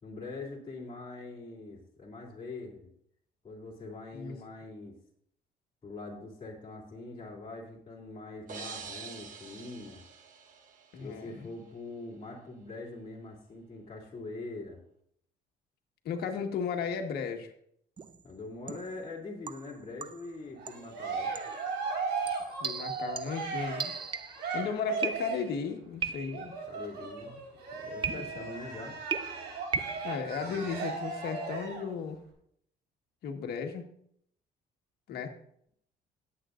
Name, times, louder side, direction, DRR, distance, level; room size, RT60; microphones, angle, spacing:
voice 1, 0.0-2.9 3.4-5.0 5.8-10.0 11.0-14.8 18.2-21.4 26.7-27.4 27.7-29.0 30.4-30.7, left 3 dB, 30° left, -4 dB, 3.0 m, -43 dB
sound 1, 8.5-11.3, right 5 dB, 50° right, 1.3 m, -45 dB
voice 2, 10.9-11.5 16.0-17.5 22.6-23.9 24.5-26.6 28.1-28.2 30.0-32.2 33.2-33.9 35.1-35.3, left 6 dB, 70° left, 4 dB, 1.6 m, -35 dB
sound 2, 18.0-18.2 18.7-19.0 19.5-20.4 20.7-20.9 21.3-21.6 22.3-24.5 25.0-25.6 26.0-26.6 28.0-28.6 29.1-30.1, right 6 dB, 30° right, 0.6 m, -37 dB
Cheering, 20.6-25.6 26.3-31.9, right 4 dB, 80° right, 4.2 m, -37 dB
19.0 x 8.4 x 2.5 m, 0.68 s
cardioid pair, 110°, 17 cm